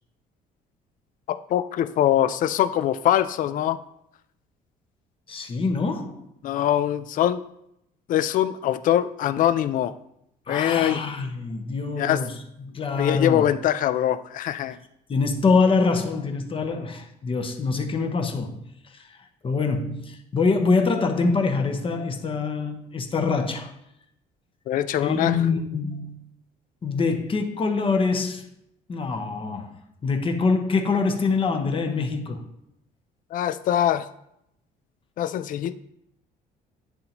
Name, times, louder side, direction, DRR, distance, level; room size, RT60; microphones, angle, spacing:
voice 1, 1.3-3.8 6.4-7.4 8.1-9.9 10.5-11.0 12.0-12.2 13.0-14.8 24.7-25.3 33.3-34.1 35.2-35.7, left 11 dB, 55° left, 0.4 m, -23 dB
voice 2, 5.3-6.2 10.5-13.4 15.1-18.6 18.9-19.2 19.4-23.7 25.0-26.2 26.8-28.5 28.9-29.7 30.0-32.5, left 4 dB, 30° left, 1.0 m, -24 dB
10.5 x 3.9 x 2.9 m
cardioid pair, 110°, 17 cm